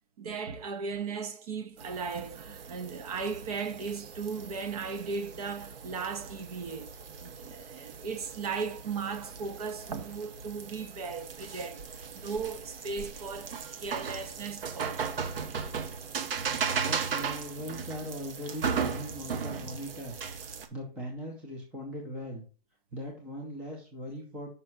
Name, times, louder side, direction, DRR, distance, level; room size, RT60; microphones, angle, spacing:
voice 1, 0.2-6.9 7.2-15.1, right 5 dB, 40° right, 0.9 m, -37 dB
sound 1, 1.8-20.7, right 6 dB, 70° right, 1.2 m, -37 dB
voice 2, 16.7-22.4 22.9-24.5, equal, 5° right, 0.5 m, -40 dB
5.5 x 5.4 x 5.9 m
hypercardioid pair, 170°, 30 cm